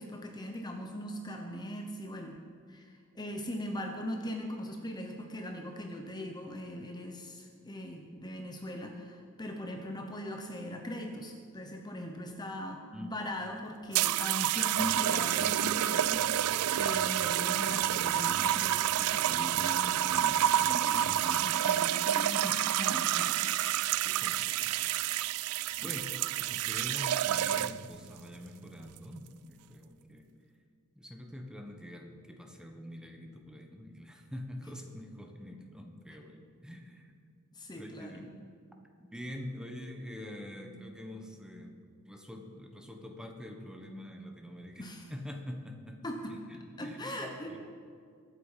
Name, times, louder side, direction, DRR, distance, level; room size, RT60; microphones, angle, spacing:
voice 1, 0.0-2.4 2.7-23.8 25.7-25.9 37.5-38.1 44.8-45.1 46.0-46.3 46.8-47.6, equal, 20° left, 2 dB, 1.0 m, -40 dB
voice 2, 12.9-13.3 24.0-24.9 25.8-26.1 26.4-30.3 30.9-37.1 37.7-38.4 39.0-41.8 42.1-46.0 46.3-47.2 47.5-47.6, left 1 dB, 5° right, 3 dB, 1.3 m, -45 dB
sound 1, 13.9-27.9 28.8-29.2, right 12 dB, 70° right, 0.3 m, -29 dB
23.0 x 8.3 x 5.8 m, 2.2 s
head